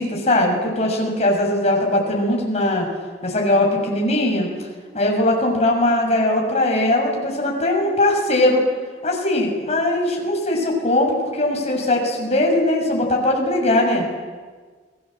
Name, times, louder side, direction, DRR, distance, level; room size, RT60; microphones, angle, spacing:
voice 1, 0.0-2.8 3.2-4.5 4.9-8.6 9.0-14.0, left 1 dB, 40° left, 0 dB, 6.8 m, -20 dB
29.0 x 20.0 x 7.8 m, 1.5 s
head